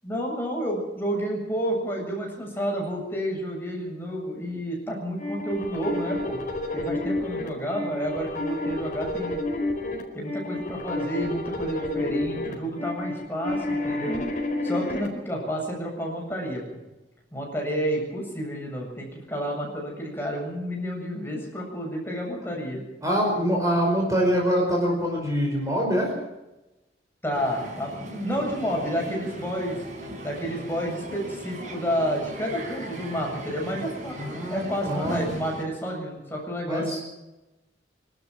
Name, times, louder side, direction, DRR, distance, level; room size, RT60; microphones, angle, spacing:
voice 1, 0.0-6.4 6.7-9.4 10.1-16.6 17.3-22.8 27.2-29.8 30.2-34.2 34.5-37.0, equal, 15° left, -1 dB, 7.7 m, -30 dB
sound 1, 5.2-15.1, left 2 dB, 45° left, 4.7 m, -30 dB
voice 2, 23.0-26.1 34.2-35.2 36.7-37.0, equal, 20° right, -1 dB, 5.3 m, -24 dB
Crowd, 27.3-35.6, right 1 dB, 45° right, 5.3 m, -39 dB
26.0 x 13.0 x 7.8 m, 1.0 s
head